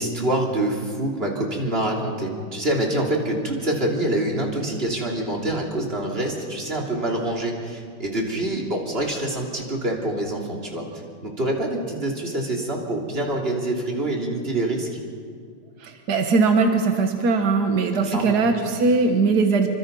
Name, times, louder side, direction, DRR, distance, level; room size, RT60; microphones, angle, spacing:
voice 1, 0.0-15.0 18.1-18.4, right 1 dB, 35° right, -1 dB, 3.4 m, -26 dB
voice 2, 15.8-19.7, right 4 dB, 70° right, 5 dB, 1.9 m, -20 dB
27.5 x 24.5 x 5.4 m, 2.1 s
omnidirectional pair, 1.8 m